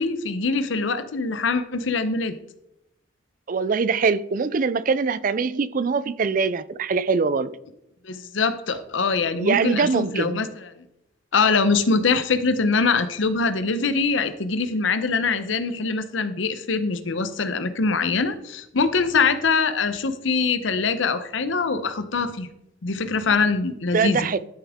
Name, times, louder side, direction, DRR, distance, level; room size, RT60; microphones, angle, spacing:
voice 1, 0.0-2.4 8.0-10.5 11.3-22.5 22.8-24.3, left 4 dB, 80° left, 0.8 m, -23 dB
voice 2, 3.5-7.5 9.3-10.4 23.9-24.4, right 5 dB, 45° right, 0.4 m, -23 dB
12.0 x 7.0 x 3.6 m
head